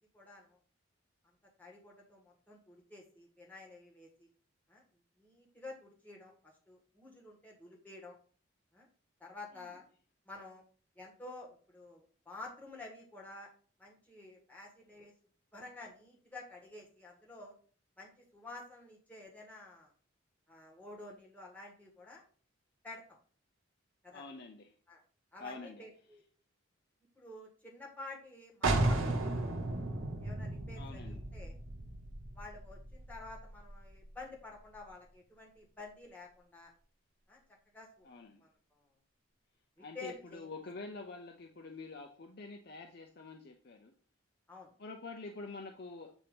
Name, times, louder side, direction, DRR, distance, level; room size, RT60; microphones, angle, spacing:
voice 1, 0.1-0.6 1.6-4.3 4.7-4.8 5.2-8.2 8.7-8.9 9.2-9.8 10.2-10.6 10.9-13.5 13.8-15.1 15.5-17.5 18.0-19.9 20.5-22.2 22.8-23.2 24.0-24.2 24.9-25.0 25.3-26.2 27.2-29.4 30.2-31.6 32.3-36.7 37.3-37.4 37.7-38.1 38.4-38.8 39.8-40.5 44.5-44.7, left 2 dB, 10° left, -3 dB, 1.6 m, -50 dB
voice 2, 24.1-24.7 25.4-25.8 30.8-31.2 38.0-38.4 39.8-43.9 44.8-46.2, left 3 dB, 50° left, 3 dB, 0.6 m, -47 dB
sound 1, 28.6-34.2, right 2 dB, 75° right, 1.0 m, -35 dB
7.9 x 2.9 x 5.2 m, 0.43 s
head